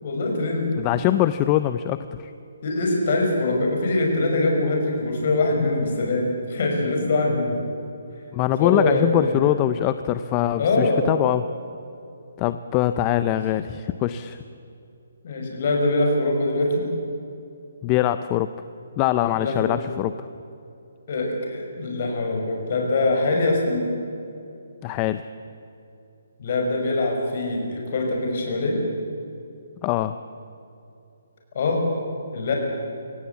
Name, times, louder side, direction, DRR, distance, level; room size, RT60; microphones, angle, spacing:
voice 1, 0.0-0.7 2.6-7.6 8.6-9.6 10.6-11.1 15.2-16.9 19.4-19.7 21.1-23.8 26.4-28.8 31.5-31.8 32.3-32.5, left 2 dB, 40° left, 1 dB, 5.8 m, -23 dB
voice 2, 0.8-2.3 8.3-11.4 12.4-14.4 17.8-18.5 19.0-20.1 24.8-25.2 29.8-30.2, left 13 dB, 20° left, 12 dB, 0.5 m, -23 dB
24.5 x 17.5 x 8.4 m, 2.7 s
hypercardioid pair, 170°, 0 cm